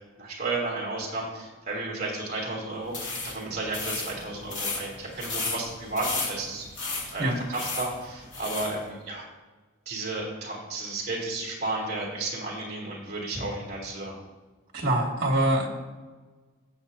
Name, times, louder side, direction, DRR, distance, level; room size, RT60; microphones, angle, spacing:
voice 1, 0.2-6.7 7.1-9.2 9.8-14.1, right 2 dB, 35° right, -4 dB, 3.1 m, -33 dB
sound 1, 2.9-8.8, left 3 dB, 70° left, 2.6 m, -34 dB
voice 2, 14.7-15.7, right 1 dB, 55° right, -1 dB, 2.3 m, -24 dB
16.5 x 6.9 x 2.8 m, 1.3 s
head